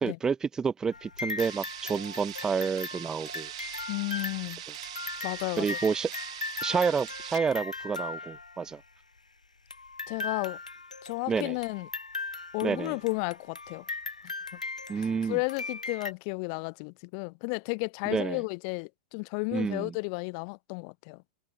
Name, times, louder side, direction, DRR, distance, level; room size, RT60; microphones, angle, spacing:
voice 1, 0.0-3.5 5.6-6.1 6.6-8.8 11.3-11.6 12.6-13.0 14.9-15.4 18.1-18.4 19.5-20.0, right 6 dB, 15° right, 0.9 m, -29 dB
sound 1, 0.9-8.8 9.7-16.1, left 3 dB, 90° left, 4.7 m, -39 dB
sound 2, 1.4-7.4, right 15 dB, 60° right, 3.5 m, -42 dB
voice 2, 3.9-4.6 5.2-5.8 10.1-10.6 11.0-11.9 12.5-13.8 15.0-21.2, left 38 dB, 45° left, 0.9 m, -33 dB
open air
figure-of-eight pair, 100°, 4 cm